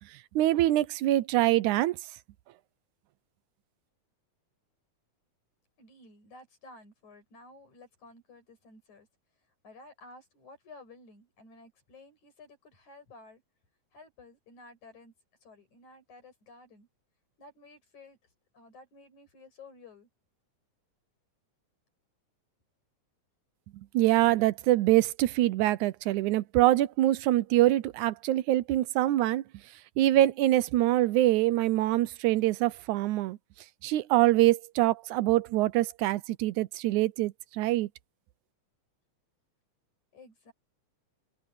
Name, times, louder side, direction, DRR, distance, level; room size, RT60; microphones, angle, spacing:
voice 1, 0.4-2.0 23.9-29.4 30.0-33.4 33.8-37.9, right 15 dB, 85° right, 2.1 m, -24 dB
voice 2, 5.8-9.1 9.6-13.4 13.9-15.1 15.4-16.9 17.4-18.2 18.5-20.1 40.1-40.5, left 3 dB, 70° left, 8.1 m, -53 dB
omnidirectional pair, 3.5 m